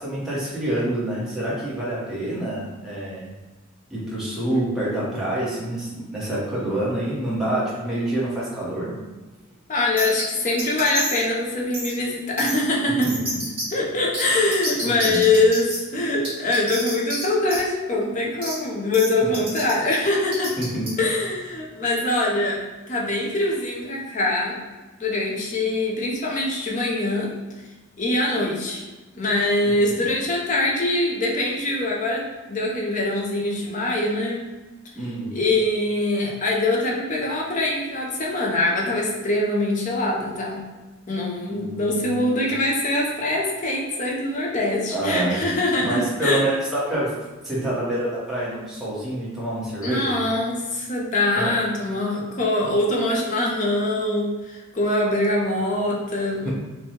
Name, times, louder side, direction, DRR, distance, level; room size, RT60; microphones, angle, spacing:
voice 1, 0.0-3.3 3.9-9.0 13.0-13.3 14.8-15.3 19.2-19.3 20.6-20.9 29.6-29.8 34.9-35.3 41.5-42.4 44.9-45.4 45.8-47.1 47.4-50.2 51.3-51.5 56.4-56.5, right 1 dB, ahead, -8 dB, 0.9 m, -27 dB
voice 2, 9.7-13.2 13.7-20.5 21.0-22.6 22.9-24.5 25.0-27.3 28.0-28.8 29.2-32.2 32.5-34.4 35.3-40.6 41.1-46.4 49.8-56.5, left 2 dB, 35° left, -2 dB, 0.6 m, -23 dB
sound 1, 10.0-10.2 10.6-11.2 11.7-11.9 12.4-12.6 13.0-13.6 14.1-14.2 14.5-15.8 16.2-17.2 17.5-17.6 18.4-18.5 18.9-19.1 19.3-19.7 20.3-20.9, right 1 dB, 25° right, 1.5 m, -29 dB
3.1 x 2.2 x 4.1 m, 1.2 s
head